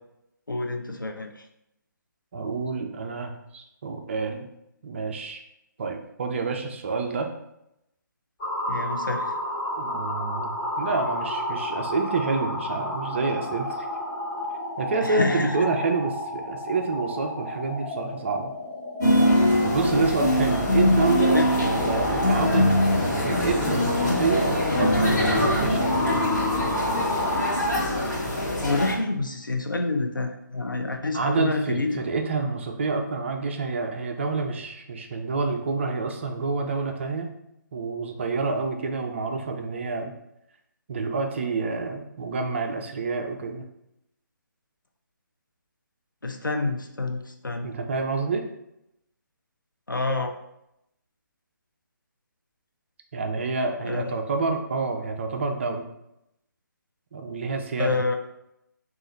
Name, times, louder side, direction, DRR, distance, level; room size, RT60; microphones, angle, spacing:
voice 1, 0.5-1.3 8.7-9.3 15.0-15.6 21.3-21.5 28.4-32.1 46.2-47.7 49.9-50.3 53.8-54.1 57.8-58.1, left 3 dB, 85° left, 4 dB, 0.5 m, -28 dB
voice 2, 2.3-4.5 4.8-5.4 5.8-7.3 9.8-10.5 10.8-13.9 14.8-18.5 19.6-22.7 23.2-26.0 31.1-37.3 37.7-40.1 40.9-43.6 47.6-48.4 53.1-55.9 57.1-58.0, right 4 dB, 35° right, 4 dB, 0.4 m, -28 dB
sound 1, 8.4-27.7, left 1 dB, 15° left, 1.1 m, -32 dB
sound 2, 19.0-28.9, left 1 dB, 60° left, 1.2 m, -23 dB
3.8 x 2.4 x 3.1 m, 0.83 s
figure-of-eight pair, 145°, 11 cm